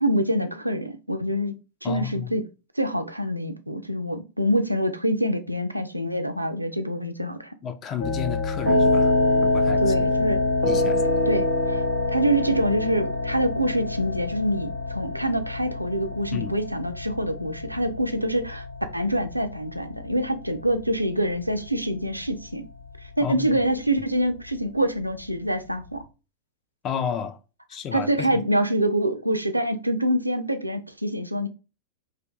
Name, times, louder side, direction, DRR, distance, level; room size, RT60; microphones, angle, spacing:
voice 1, 0.0-1.5 1.8-2.4 2.8-7.5 9.8-10.4 11.3-11.8 12.1-18.6 18.9-22.7 23.2-26.0 27.9-31.5, right 1 dB, 85° right, 0.3 m, -25 dB
voice 2, 1.8-2.4 7.6-9.1 9.4-10.1 10.7-11.3 16.3-16.5 23.2-23.5 26.8-27.4 27.7-28.4, left 8 dB, 30° left, 0.4 m, -32 dB
sound 1, 8.0-26.0, left 2 dB, 80° left, 0.8 m, -26 dB
2.5 x 2.4 x 3.3 m
figure-of-eight pair, 90°, 0 cm